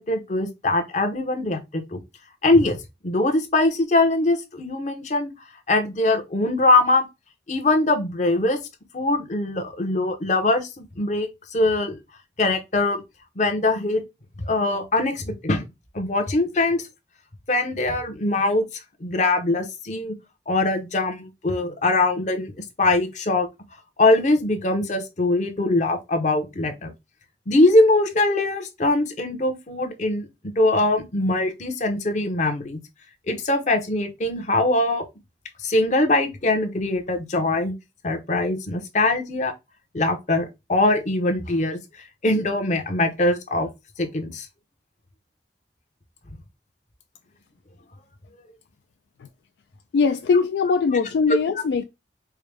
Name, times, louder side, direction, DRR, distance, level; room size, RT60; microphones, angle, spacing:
voice 1, 0.0-2.0 2.4-2.8 3.0-5.3 5.7-7.1 7.5-8.6 8.9-12.0 12.4-13.0 13.4-14.0 14.4-15.6 15.9-16.8 17.5-18.6 19.0-20.1 20.5-22.5 22.8-23.5 24.0-26.9 27.5-32.8 33.3-35.0 35.6-37.7 38.0-39.5 39.9-41.8 42.2-43.7 44.0-44.5 48.3-48.4, left 2 dB, 40° left, 0.8 m, -22 dB
voice 2, 49.9-51.8, left 5 dB, 70° left, 0.3 m, -21 dB
4.6 x 2.1 x 3.3 m
head